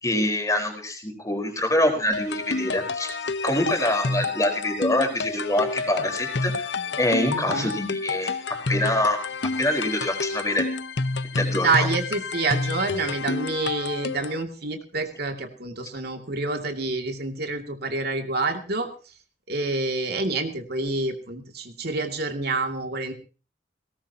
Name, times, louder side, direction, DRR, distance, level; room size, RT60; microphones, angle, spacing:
voice 1, 0.0-3.1 3.4-6.7 7.0-9.2 9.6-10.7 11.3-11.9, left 1 dB, 20° left, 5 dB, 4.4 m, -25 dB
sound 1, 2.1-14.4, left 3 dB, 70° left, 0.9 m, -29 dB
voice 2, 7.3-7.7 11.6-18.9 19.5-23.1, right 3 dB, 60° right, 4 dB, 2.5 m, -27 dB
20.5 x 18.0 x 2.9 m, 0.35 s
head